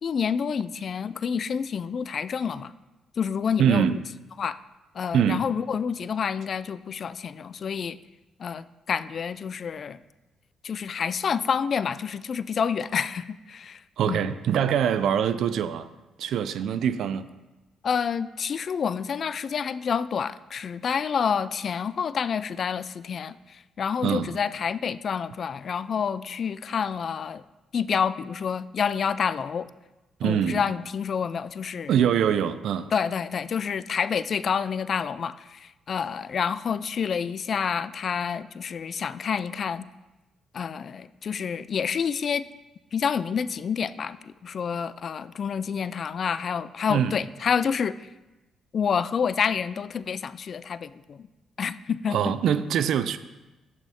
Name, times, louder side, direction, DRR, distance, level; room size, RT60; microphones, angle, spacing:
voice 1, 0.0-2.7 3.2-4.0 4.4-4.6 4.9-8.0 8.4-10.0 10.6-13.8 14.1-14.2 17.8-27.4 27.7-29.7 30.2-31.9 32.9-39.9 40.5-42.4 42.9-48.1 48.7-51.3 51.6-52.3, left 7 dB, 55° left, 15 dB, 0.3 m, -28 dB
voice 2, 3.6-4.0 5.1-5.4 14.0-15.9 16.2-17.3 24.0-24.4 30.2-30.7 31.9-32.9 46.9-47.2 52.1-53.2, right 8 dB, 65° right, 13 dB, 0.4 m, -24 dB
11.0 x 8.2 x 2.8 m, 1.1 s
hypercardioid pair, 50°, 0 cm